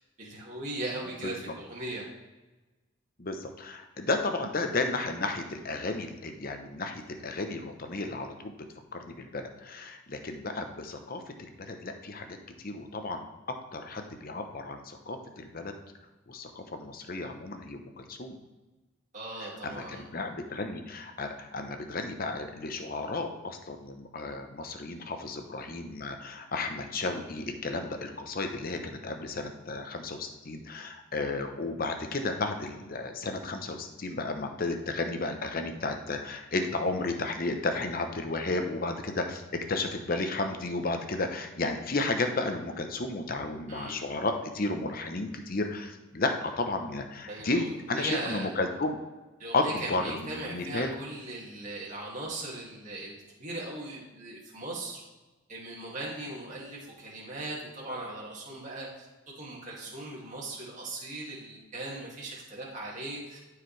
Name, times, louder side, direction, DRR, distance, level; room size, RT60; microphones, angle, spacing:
voice 1, 0.2-2.1 19.1-20.0 43.7-44.0 47.3-48.5 49.4-55.0 55.5-59.1 59.4-63.4, right 2 dB, 35° right, -5 dB, 2.2 m, -38 dB
voice 2, 1.2-1.5 3.2-8.5 8.9-12.4 12.6-13.2 13.7-15.7 16.3-18.4 19.4-39.4 39.7-49.0 49.5-50.9, left 2 dB, 45° left, 5 dB, 0.8 m, -33 dB
12.5 x 4.8 x 3.3 m, 1.2 s
head